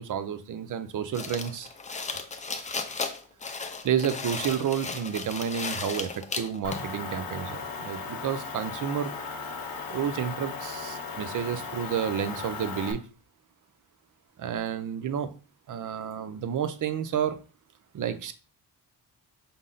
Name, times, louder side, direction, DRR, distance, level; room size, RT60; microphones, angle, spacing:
voice 1, 0.0-1.7 2.7-2.8 3.8-9.1 9.9-13.0 14.4-15.3 15.7-17.4 17.9-18.3, right 8 dB, 55° right, 11 dB, 0.5 m, -30 dB
sound 1, 1.1-6.9, left 4 dB, 20° left, 0.3 m, -35 dB
Motor vehicle (road) / Engine, 6.6-12.9, left 4 dB, 60° left, 0.7 m, -37 dB
5.3 x 2.0 x 3.8 m, 0.36 s
wide cardioid pair, 130°, 39 cm